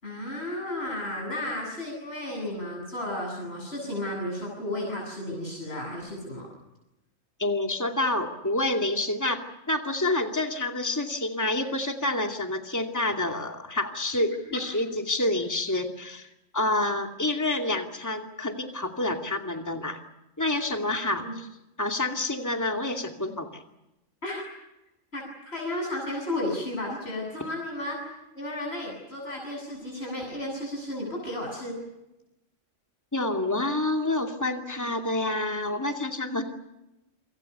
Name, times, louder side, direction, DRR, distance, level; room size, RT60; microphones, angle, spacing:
voice 1, 0.0-6.5 14.5-14.6 21.2-21.3 24.2-24.4 25.1-31.8, left 1 dB, 50° left, -1 dB, 7.9 m, -33 dB
voice 2, 7.4-9.4 9.7-16.3 16.5-20.0 20.4-21.5 21.8-23.6 33.1-36.4, left 2 dB, 15° left, 4 dB, 2.5 m, -28 dB
28.5 x 26.0 x 6.9 m, 0.94 s
omnidirectional pair, 1.3 m